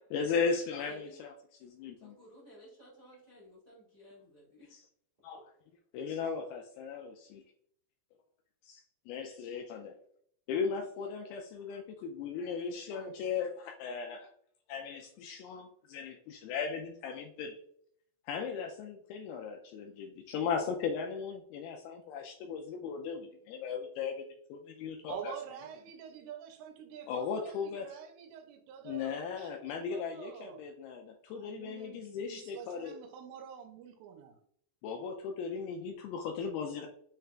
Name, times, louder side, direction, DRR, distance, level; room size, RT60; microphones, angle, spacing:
voice 1, 0.1-2.2 4.7-4.8 5.2-5.4 5.9-7.4 8.6-9.9 10.5-14.3 14.7-17.6 18.3-24.2 24.5-25.3 27.1-27.9 28.8-33.0 34.8-36.9, left 6 dB, 85° left, 2.2 m, -37 dB
voice 2, 0.8-1.2 2.0-4.8, left 1 dB, 60° right, 0.5 m, -56 dB
voice 3, 25.1-30.6 31.3-34.4, right 8 dB, 90° right, 2.8 m, -47 dB
6.6 x 2.4 x 3.3 m
omnidirectional pair, 4.9 m